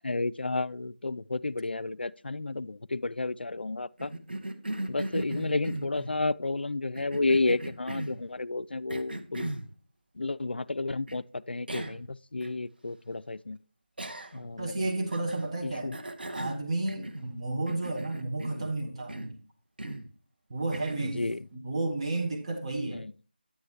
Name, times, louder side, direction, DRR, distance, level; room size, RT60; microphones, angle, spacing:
voice 1, 0.0-4.1 4.9-9.5 10.2-13.6 14.3-14.7 15.6-16.0 21.2-21.5 22.9-23.1, left 3 dB, 75° left, 0.3 m, -31 dB
Cough, 4.0-6.2 6.9-8.2 8.9-9.7 11.1-11.2 11.7-12.1 12.4-12.5 14.0-14.5 15.1-15.5 15.9-17.4 17.7-18.7 19.1-19.4 19.8-20.1 20.7-21.2, right 1 dB, 65° right, 0.9 m, -37 dB
voice 2, 14.6-15.9 16.3-19.4 20.5-21.3 21.5-23.1, right 2 dB, 30° right, 1.1 m, -32 dB
9.7 x 8.0 x 2.8 m
figure-of-eight pair, 165°, 6 cm